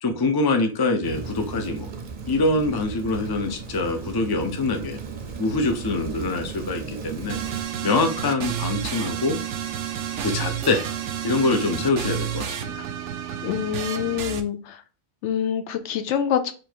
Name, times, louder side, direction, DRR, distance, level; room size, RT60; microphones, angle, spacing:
voice 1, 0.0-1.9 2.3-5.0 5.4-7.4 7.8-9.4 10.2-10.8 11.2-12.9, left 2 dB, 30° left, 6 dB, 0.5 m, -24 dB
Rain, 1.0-7.7, right 5 dB, 50° right, 0.7 m, -36 dB
sound 1, 7.3-14.4, right 9 dB, 85° right, 0.9 m, -30 dB
voice 2, 13.4-14.8 15.2-16.5, left 9 dB, 75° left, 8 dB, 0.9 m, -26 dB
4.6 x 2.6 x 4.3 m, 0.35 s
omnidirectional pair, 1.2 m